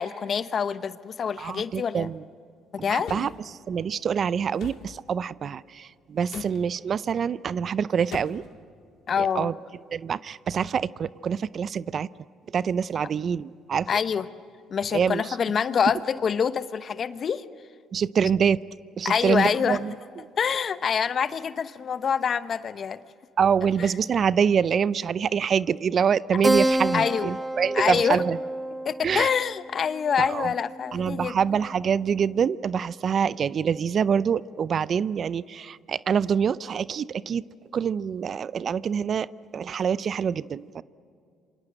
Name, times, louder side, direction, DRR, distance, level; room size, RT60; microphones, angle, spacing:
voice 1, 0.0-2.1 2.7-3.3 6.3-6.4 9.1-9.5 13.9-14.3 14.7-17.4 19.0-19.8 20.4-23.0 23.8-23.9 26.9-27.3 27.7-28.2 28.8-31.4, left 7 dB, 50° left, 13 dB, 1.0 m, -26 dB
voice 2, 1.4-2.2 2.9-3.3 3.7-8.4 9.2-9.5 9.9-12.1 12.5-13.9 14.9-15.4 17.9-18.6 19.0-19.9 23.4-28.4 29.0-29.3 30.2-30.5 30.9-37.4 37.7-39.3 39.5-40.8, right 7 dB, 50° right, 19 dB, 0.6 m, -25 dB
sound 1, 3.0-3.4 4.6-4.9 6.3-6.6 8.1-8.5, left 8 dB, 65° left, 1.9 m, -40 dB
Keyboard (musical), 26.4-31.4, right 1 dB, 10° right, 1.4 m, -29 dB
27.5 x 25.0 x 7.8 m, 2.4 s
supercardioid pair, 70°, 0 cm